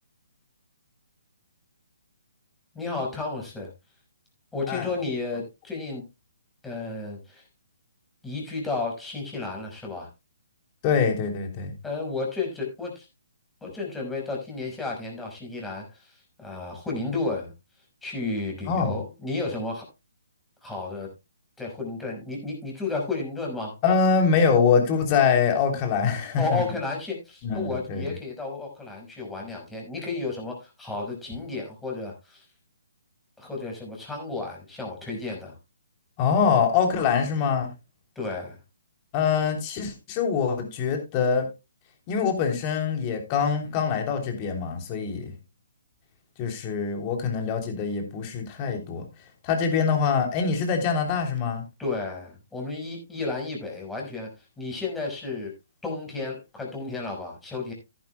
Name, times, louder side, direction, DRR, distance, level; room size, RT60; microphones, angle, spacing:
voice 1, 2.7-3.7 4.5-6.0 6.6-7.4 8.2-10.1 11.8-13.1 13.6-17.5 18.0-19.8 20.6-21.1 21.6-23.8 26.4-32.5 33.4-35.6 38.2-38.6 51.8-54.3 54.6-55.5 55.8-57.7, left 3 dB, 5° left, 5.3 m, -32 dB
voice 2, 10.8-11.7 18.7-18.9 23.8-26.6 27.4-28.0 36.2-37.7 39.1-41.4 42.1-45.3 46.4-49.1 49.4-51.6, left 6 dB, 30° left, 3.3 m, -24 dB
15.0 x 11.0 x 2.3 m
figure-of-eight pair, 140°, 0 cm